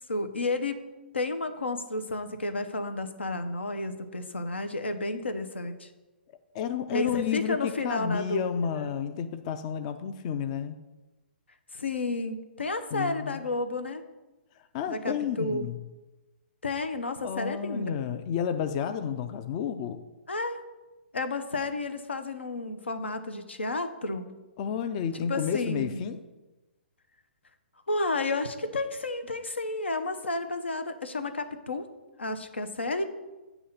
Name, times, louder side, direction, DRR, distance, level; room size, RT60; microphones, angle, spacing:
voice 1, 0.1-0.8 1.1-5.9 6.9-8.9 11.7-14.0 14.9-15.6 16.6-17.9 20.3-20.6 21.1-24.3 25.1-26.0 27.9-31.8 32.2-33.0, left 2 dB, 85° left, 9 dB, 0.6 m, -31 dB
voice 2, 6.5-10.8 12.9-13.4 14.7-15.8 17.2-20.0 24.6-26.2, left 8 dB, 35° left, 9 dB, 0.4 m, -31 dB
8.2 x 2.9 x 5.7 m, 1.1 s
figure-of-eight pair, 125°, 6 cm